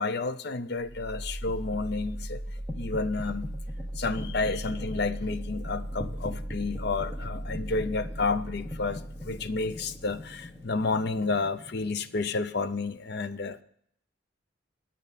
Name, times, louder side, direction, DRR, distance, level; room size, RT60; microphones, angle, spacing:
voice 1, 0.0-2.4 2.8-3.5 4.0-13.6, left 3 dB, 55° left, 13 dB, 0.6 m, -31 dB
sound 1, 0.8-12.7, equal, ahead, 1.3 m, -37 dB
19.0 x 7.8 x 4.0 m, 0.69 s
head